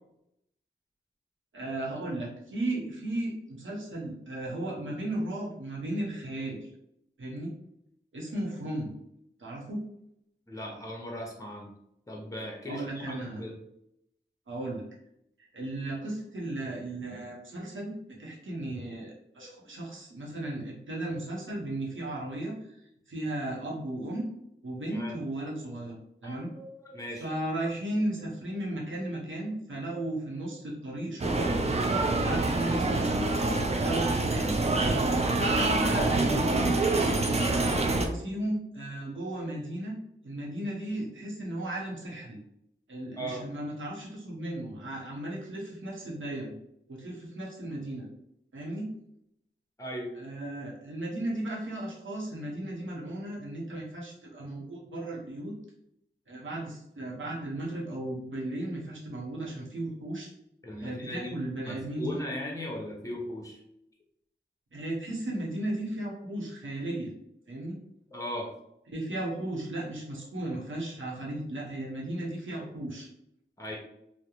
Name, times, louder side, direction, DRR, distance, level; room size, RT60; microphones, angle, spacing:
voice 1, 1.5-6.7 7.2-7.5 8.1-8.9 9.4-9.8 12.7-13.4 14.5-14.8 15.5-22.8 23.1-24.2 24.6-26.0 26.2-26.5 27.2-31.6 32.1-33.5 33.8-34.5 35.2-37.4 37.8-39.9 40.2-42.4 42.9-46.5 46.9-48.1 48.5-48.9 50.1-55.5 56.3-60.3 60.8-62.2 64.7-67.1 67.5-67.8 68.9-73.1, right 1 dB, 85° right, -4 dB, 0.7 m, -35 dB
voice 2, 10.5-11.7 12.1-13.5 19.4-19.5 24.9-25.1 26.2-27.3 43.2-43.4 49.8-50.2 60.6-61.4 61.6-63.6 68.1-68.5 73.6-73.8, equal, 15° left, 0 dB, 0.7 m, -38 dB
sound 1, 31.2-38.1, right 2 dB, 35° right, 0.4 m, -26 dB
2.3 x 2.0 x 2.9 m, 0.78 s
cardioid pair, 40°, 20 cm